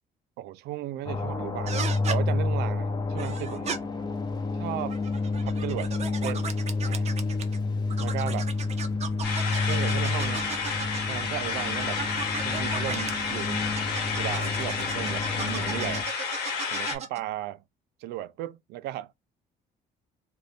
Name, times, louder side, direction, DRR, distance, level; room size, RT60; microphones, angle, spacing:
voice 1, 0.4-3.8 4.5-5.0 5.4-5.9 6.2-6.5 6.8-7.2 8.0-8.5 9.7-10.5 11.1-12.0 12.4-13.7 14.1-16.1 16.7-17.6 18.0-19.1, right 13 dB, 85° right, 0.4 m, -35 dB
sound 1, 1.1-16.0, left 3 dB, 25° left, 0.7 m, -30 dB
sound 2, 1.7-2.2 3.2-3.8 4.8-7.6 7.9-11.2 11.8-13.1 13.8-17.2, right 6 dB, 40° right, 0.6 m, -36 dB
sound 3, 9.2-17.0, left 5 dB, 80° left, 1.3 m, -31 dB
2.6 x 2.6 x 3.1 m
cardioid pair, 110°, 17 cm